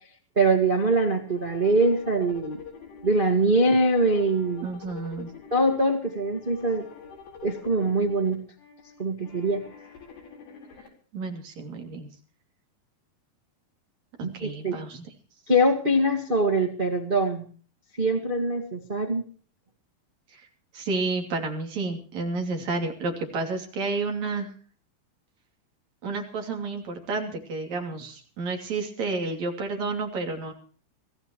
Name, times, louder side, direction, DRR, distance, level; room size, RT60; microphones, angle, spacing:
voice 1, 0.3-2.6 3.0-4.7 5.5-6.8 7.4-8.4 9.0-9.6 14.2-14.8 15.5-17.5 18.0-19.2, right 1 dB, 70° right, 1 dB, 0.5 m, -23 dB
sound 1, 1.0-10.9, left 6 dB, 80° left, 6.5 m, -46 dB
voice 2, 4.6-5.3 11.1-12.1 14.2-15.1 20.3-20.5 20.7-24.5 26.0-30.5, right 3 dB, 45° right, 3 dB, 3.9 m, -31 dB
24.5 x 15.0 x 3.1 m, 0.43 s
omnidirectional pair, 4.8 m